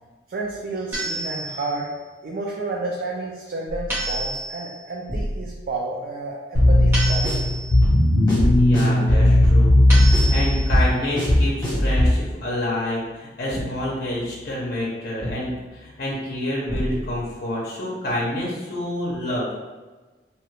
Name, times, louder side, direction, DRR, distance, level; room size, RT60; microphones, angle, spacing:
voice 1, 0.3-1.9 2.2-7.6, right 2 dB, 50° right, -2 dB, 0.3 m, -31 dB
sound 1, 0.9-1.8 3.9-4.8 6.9-7.8 9.9-10.8, right 1 dB, 15° right, 0.9 m, -29 dB
sound 2, 3.7-4.5 5.1-5.7 6.6-7.7 8.4-9.0 9.9-11.0 11.7-12.3 13.5-14.6 15.2-15.8 16.7-17.3, equal, 70° right, 1.5 m, -28 dB
sound 3, 6.5-12.2, left 1 dB, 20° left, 1.2 m, -17 dB
voice 2, 8.6-19.5, left 1 dB, 50° left, -5 dB, 0.6 m, -28 dB
2.8 x 2.3 x 3.1 m, 1.3 s
head